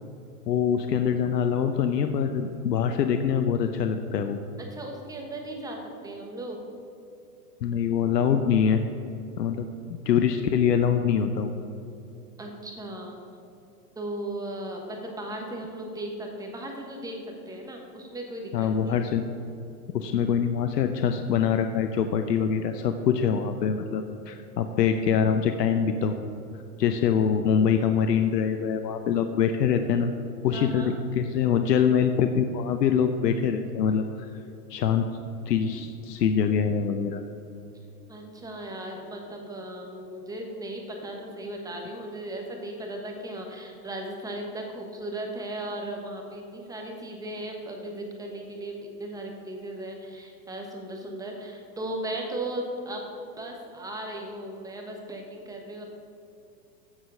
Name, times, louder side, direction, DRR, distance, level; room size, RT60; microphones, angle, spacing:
voice 1, 0.5-4.4 7.6-8.8 9.4-9.7 10.1-11.5 18.5-19.2 19.9-26.2 26.8-30.1 30.4-34.3 34.7-35.1 35.5-37.2, left 7 dB, 90° left, 7 dB, 0.8 m, -24 dB
voice 2, 4.6-6.6 12.4-13.2 13.9-19.0 30.5-30.9 38.1-53.0 53.4-55.8, right 1 dB, 5° right, 1 dB, 1.2 m, -37 dB
14.5 x 4.9 x 5.6 m, 2.8 s
hypercardioid pair, 140°, 48 cm